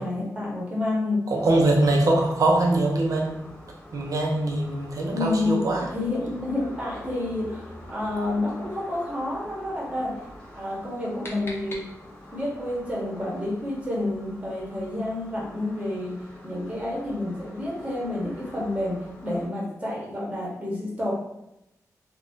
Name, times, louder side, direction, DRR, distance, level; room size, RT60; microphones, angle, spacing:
voice 1, 0.0-1.2 5.1-5.6 5.9-10.3 10.5-11.8 12.3-16.2 16.4-19.0 19.2-21.1, left 2 dB, 20° right, -5 dB, 1.0 m, -29 dB
sound 1, 1.3-19.5, equal, 15° left, 0.9 m, -45 dB
voice 2, 1.3-3.4 3.9-5.9, right 2 dB, 65° right, 0 dB, 0.6 m, -22 dB
sound 2, 10.7-12.4, left 1 dB, 40° left, 0.7 m, -43 dB
2.6 x 2.3 x 3.5 m, 0.85 s
wide cardioid pair, 100°, 6 cm